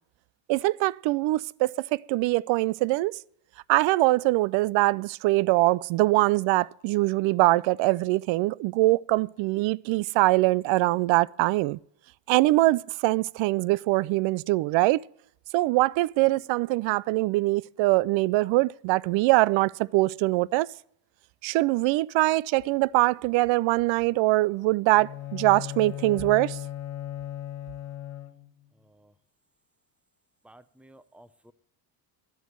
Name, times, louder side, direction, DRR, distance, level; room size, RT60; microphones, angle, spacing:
voice 1, 0.5-3.1 3.7-11.8 12.3-15.0 15.5-20.7 21.4-26.6, right 19 dB, 70° right, 0.5 m, -23 dB
Bowed string instrument, 24.9-28.6, left 13 dB, 35° left, 1.0 m, -37 dB
voice 2, 30.4-31.5, right 1 dB, 5° right, 0.5 m, -54 dB
11.0 x 8.2 x 7.4 m
cardioid pair, 120°, 48 cm